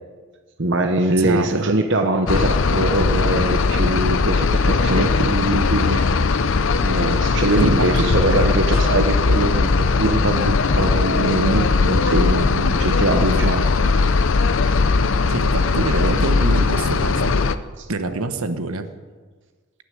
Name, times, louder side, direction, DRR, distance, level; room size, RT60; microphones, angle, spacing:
voice 1, 0.6-6.5 6.8-13.7 17.8-17.9, right 2 dB, 55° right, 6 dB, 0.9 m, -22 dB
voice 2, 1.2-1.7 7.6-8.1 8.4-8.5 12.4-12.5 13.4-13.6 15.3-17.3 17.9-18.9, right 3 dB, 75° right, 9 dB, 1.1 m, -26 dB
sound 1, 2.3-17.6, left 4 dB, 60° left, 0.6 m, -19 dB
19.0 x 6.8 x 9.3 m, 1.4 s
head